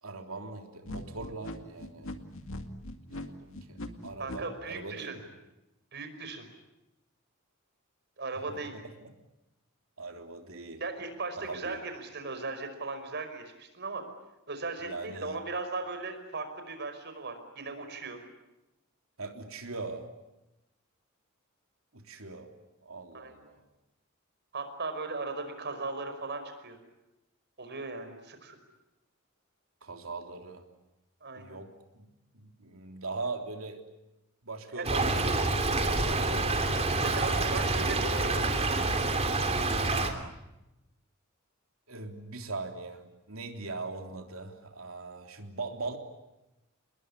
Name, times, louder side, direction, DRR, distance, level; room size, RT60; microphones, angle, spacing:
voice 1, 0.0-2.1 3.1-3.8 4.0-5.2 9.0-9.1 10.0-10.8 11.4-11.8 14.8-15.4 19.2-20.1 21.9-22.5 22.8-23.6 29.8-30.6 31.3-32.1 32.3-33.8 34.4-36.2 41.9-46.0, right 3 dB, 70° right, 4 dB, 3.5 m, -40 dB
sound 1, 0.8-4.4, left 1 dB, 70° left, 2.3 m, -40 dB
voice 2, 4.2-5.2 5.9-6.5 8.2-8.7 10.8-14.0 14.5-18.2 23.1-23.3 24.5-26.8 27.6-28.6 31.2-31.6 34.7-34.9 37.0-38.5, right 3 dB, 55° right, 7 dB, 5.3 m, -37 dB
Stream / Trickle dribble, 34.8-40.1, right 2 dB, 30° right, 3.0 m, -27 dB
28.5 x 21.0 x 9.8 m, 0.94 s
head